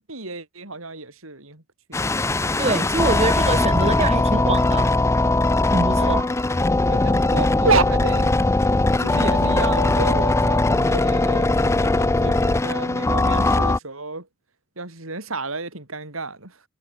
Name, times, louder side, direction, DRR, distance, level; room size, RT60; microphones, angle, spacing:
voice 1, 0.0-1.6 6.0-6.2 6.8-8.3 9.0-14.3 14.8-16.6, right 3 dB, 75° right, 4.9 m, -29 dB
sound 1, 1.9-13.8, left 2 dB, 15° left, 0.4 m, -20 dB
voice 2, 2.6-4.9 5.7-6.3, right 3 dB, 30° right, 1.0 m, -24 dB
head